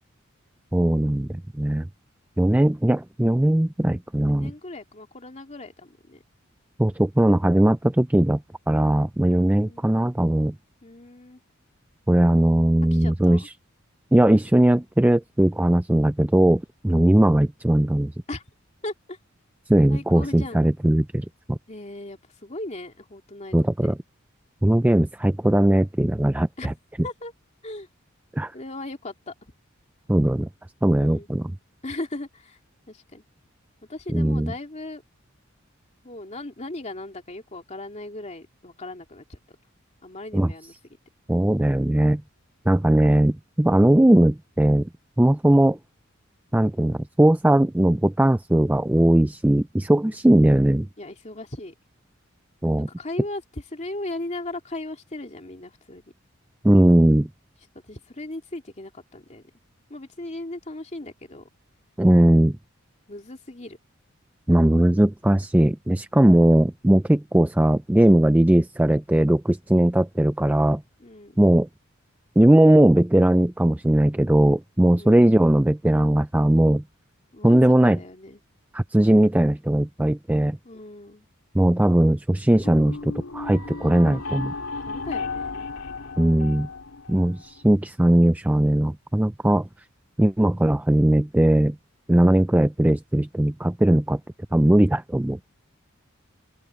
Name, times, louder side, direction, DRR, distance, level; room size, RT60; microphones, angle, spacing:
voice 1, 0.7-1.9 2.4-4.5 6.8-8.4 8.7-10.5 12.1-13.5 14.1-18.1 19.7-21.6 23.5-24.0 24.6-26.7 28.4-28.5 30.1-30.5 30.8-31.5 34.1-34.5 40.3-40.5 41.3-42.2 42.7-44.9 45.2-45.8 46.5-50.9 52.6-52.9 56.6-57.3 62.0-62.6 64.5-70.8 71.4-71.7 72.4-76.8 77.4-78.0 78.7-80.6 81.5-84.5 86.2-86.7 87.1-89.7 90.2-91.8 92.1-94.2 94.5-95.4, right 1 dB, 10° right, 0.4 m, -19 dB
voice 2, 4.3-6.2 9.3-9.8 10.8-11.4 12.9-13.5 18.3-18.4 18.8-19.2 19.9-20.6 21.7-23.6 23.8-23.9 26.6-26.7 27.0-27.3 27.6-27.9 28.5-29.3 31.0-31.3 31.8-32.6 32.9-33.2 33.9-35.0 36.0-39.4 40.0-40.7 50.0-50.5 51.0-51.7 52.8-56.0 57.8-59.4 59.9-61.5 63.1-63.8 71.0-71.4 74.9-75.3 77.3-78.4 80.6-81.3 84.8-85.7, left 2 dB, 35° left, 2.8 m, -37 dB
sound 1, 82.6-87.6, left 4 dB, 85° left, 2.4 m, -34 dB
open air
head